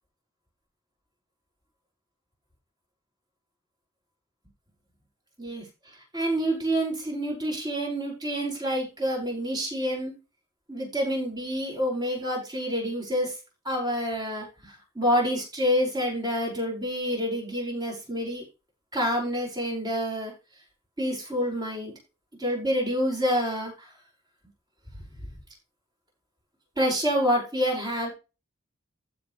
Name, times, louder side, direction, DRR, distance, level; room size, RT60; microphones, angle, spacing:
voice 1, 6.1-10.1 10.7-13.4 13.7-18.4 18.9-20.3 21.0-21.9 22.4-23.9 26.8-28.1, equal, 20° right, -2 dB, 5.4 m, -27 dB
15.0 x 5.5 x 3.2 m, 0.29 s
head